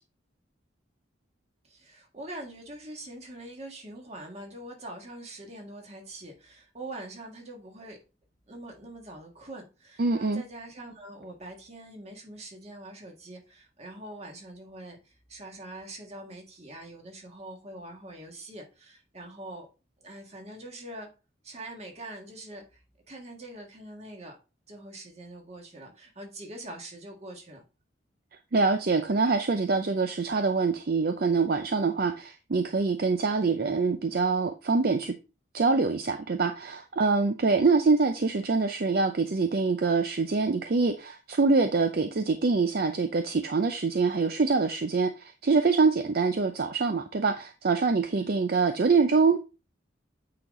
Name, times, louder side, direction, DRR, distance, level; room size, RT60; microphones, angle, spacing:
voice 1, 1.6-8.0 8.5-19.7 20.0-21.1 21.4-24.4 24.7-27.6 48.2-48.3, right 1 dB, 35° right, 1.8 m, -44 dB
voice 2, 10.0-10.4 28.5-35.1 35.5-49.4, right 4 dB, 55° right, 0.5 m, -25 dB
8.7 x 4.0 x 3.7 m
head